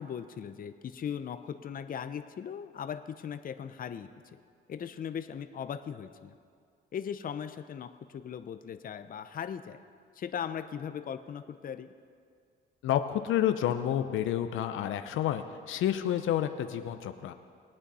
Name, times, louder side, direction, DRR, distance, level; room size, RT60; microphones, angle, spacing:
voice 1, 0.0-4.4 4.7-6.4 6.9-9.8 10.2-11.9, left 8 dB, 45° left, 9 dB, 0.6 m, -38 dB
voice 2, 12.8-17.3, left 11 dB, 80° left, 9 dB, 0.7 m, -29 dB
21.0 x 8.8 x 4.2 m, 2.2 s
cardioid pair, 90°, 20 cm